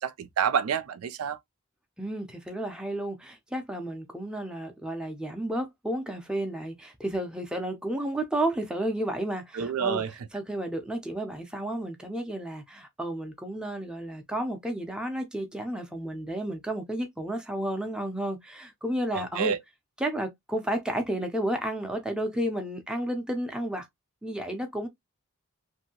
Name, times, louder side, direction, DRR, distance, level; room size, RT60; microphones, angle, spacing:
voice 1, 0.0-1.4 9.5-10.1 19.1-19.6, right 7 dB, 75° right, 0.4 m, -28 dB
voice 2, 2.0-10.0 10.3-19.5 20.0-23.9 24.2-24.9, right 1 dB, 5° right, 0.5 m, -32 dB
2.7 x 2.6 x 2.8 m
head